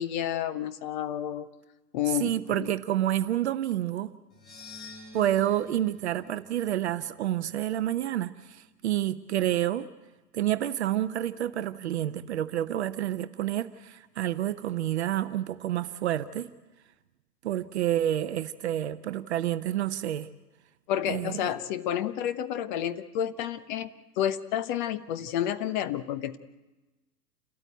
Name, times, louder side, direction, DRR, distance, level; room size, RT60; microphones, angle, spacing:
voice 1, 0.0-1.5 1.9-2.7 20.9-23.9 24.2-26.4, left 10 dB, 30° left, 0.8 m, -30 dB
voice 2, 2.2-4.1 5.1-9.9 10.3-16.5 17.4-20.3 21.1-21.5, right 12 dB, 45° right, 0.8 m, -29 dB
sound 1, 4.3-8.6, left 2 dB, 80° left, 4.5 m, -50 dB
29.0 x 13.5 x 9.1 m
figure-of-eight pair, 110°, 49 cm